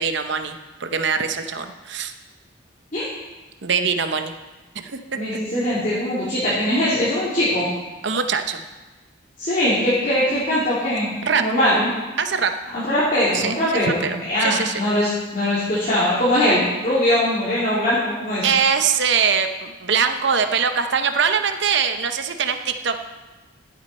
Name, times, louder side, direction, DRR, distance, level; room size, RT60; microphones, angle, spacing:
voice 1, 0.0-2.1 3.6-4.3 4.7-5.2 8.0-8.6 11.2-11.4 12.2-12.5 13.3-14.8 18.4-23.0, right 6 dB, 60° right, 7 dB, 0.8 m, -22 dB
voice 2, 5.1-7.6 9.4-11.1 11.3-11.9 12.7-18.5, left 1 dB, 40° left, -10 dB, 2.8 m, -21 dB
14.5 x 8.4 x 4.3 m, 1.2 s
head